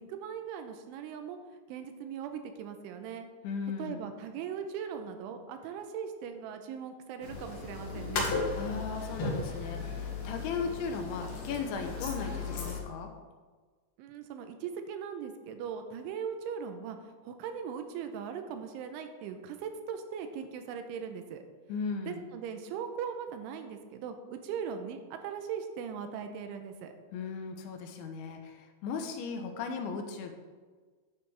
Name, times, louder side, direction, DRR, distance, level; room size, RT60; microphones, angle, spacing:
voice 1, 0.0-1.4 1.7-3.3 3.8-8.4 14.0-17.0 17.2-21.4 22.1-26.9, right 7 dB, 90° right, 7 dB, 3.2 m, -39 dB
voice 2, 3.4-4.1 8.5-13.1 21.7-22.3 27.1-30.3, left 5 dB, 80° left, 5 dB, 3.2 m, -37 dB
sound 1, 7.2-12.8, left 4 dB, 50° left, 2.1 m, -35 dB
11.5 x 9.7 x 3.5 m, 1.4 s
omnidirectional pair, 5.5 m